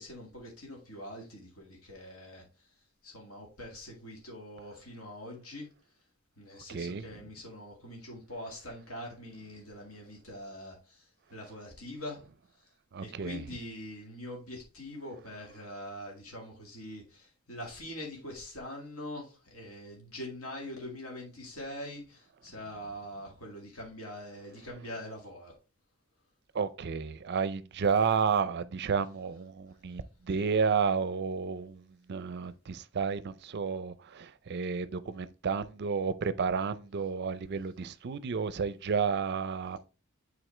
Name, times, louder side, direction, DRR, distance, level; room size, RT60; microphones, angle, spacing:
voice 1, 0.0-2.7 3.0-5.7 6.4-12.2 12.5-12.7 13.0-25.5, left 1 dB, 70° left, 2.0 m, -43 dB
voice 2, 6.7-7.0 12.9-13.4 26.5-39.8, right 5 dB, 50° right, 0.5 m, -31 dB
7.9 x 4.1 x 3.2 m
head